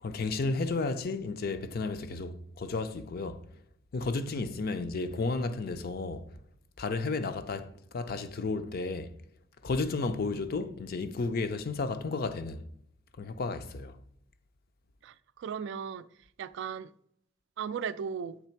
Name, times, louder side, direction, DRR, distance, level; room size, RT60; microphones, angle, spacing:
voice 1, 0.0-3.4 3.9-6.3 6.8-9.1 9.6-12.7 13.2-14.0, left 3 dB, 50° left, 0.5 m, -33 dB
voice 2, 15.0-16.1 16.4-16.9 17.6-18.4, right 7 dB, 65° right, 0.3 m, -36 dB
7.2 x 3.3 x 4.4 m
head